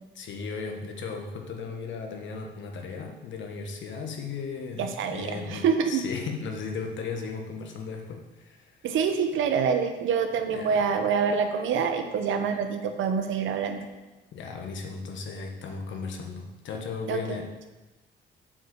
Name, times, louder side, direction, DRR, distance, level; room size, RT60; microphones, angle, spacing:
voice 1, 0.1-8.8 10.5-10.8 14.3-17.5, left 5 dB, 70° left, 3 dB, 1.4 m, -36 dB
voice 2, 4.8-6.0 8.8-13.8 17.1-17.4, right 6 dB, 80° right, 7 dB, 1.0 m, -26 dB
7.6 x 4.8 x 6.6 m, 1.1 s
cardioid pair, 90°, 20 cm